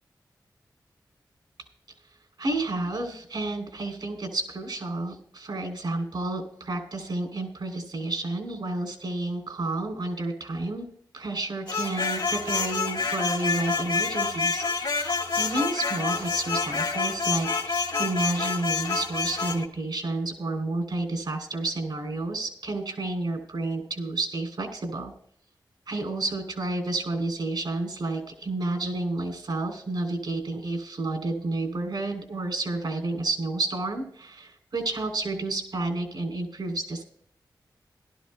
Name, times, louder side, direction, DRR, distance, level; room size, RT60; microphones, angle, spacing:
voice 1, 2.4-10.9 11.1-25.1 25.9-37.0, right 2 dB, 75° right, 5 dB, 3.1 m, -30 dB
sound 1, 11.7-19.7, left 4 dB, 70° left, 1.6 m, -28 dB
17.5 x 12.0 x 2.2 m, 0.63 s
wide cardioid pair, 70°, 8 cm